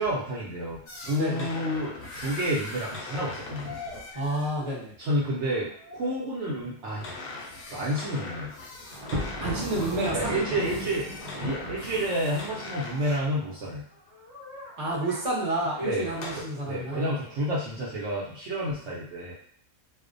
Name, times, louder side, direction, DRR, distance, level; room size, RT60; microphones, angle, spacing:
voice 1, 0.0-3.8 5.0-7.2 7.7-8.5 10.1-11.1 11.3-13.8 15.8-16.1 16.3-19.3, right 1 dB, 65° right, -5 dB, 0.8 m, -30 dB
sound 1, 0.9-4.5 6.8-13.3 15.8-16.4, left 3 dB, 60° left, 0.6 m, -40 dB
sound 2, 3.6-4.9 5.3-6.3 9.0-9.3 12.7-16.2 16.9-17.4, left 3 dB, 10° right, 1.1 m, -46 dB
voice 2, 4.1-4.9 9.4-10.6 14.8-17.1, right 1 dB, 35° right, -5 dB, 0.7 m, -30 dB
Thunder, 8.9-13.0, equal, 85° right, 1.1 m, -36 dB
2.5 x 2.1 x 2.5 m, 0.62 s
omnidirectional pair, 1.3 m